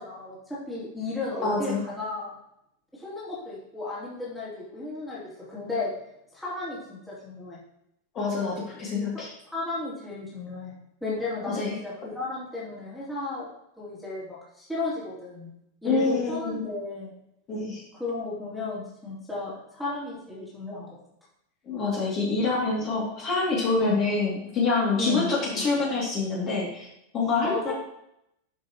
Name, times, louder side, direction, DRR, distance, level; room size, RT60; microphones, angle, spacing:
voice 1, 0.0-2.3 2.9-5.9 6.3-7.6 9.1-9.2 9.5-10.7 11.0-13.5 13.8-15.5 15.8-17.1 17.9-21.0 23.8-24.0 25.0-25.3 27.4-27.7, left 3 dB, ahead, -9 dB, 3.0 m, -34 dB
voice 2, 1.4-1.8 8.1-9.3 11.5-11.8 15.8-16.6 17.5-17.8 21.7-26.9 27.1-27.7, left 3 dB, 30° left, -5 dB, 2.7 m, -26 dB
11.0 x 6.6 x 3.1 m, 0.79 s
supercardioid pair, 165°, 0 cm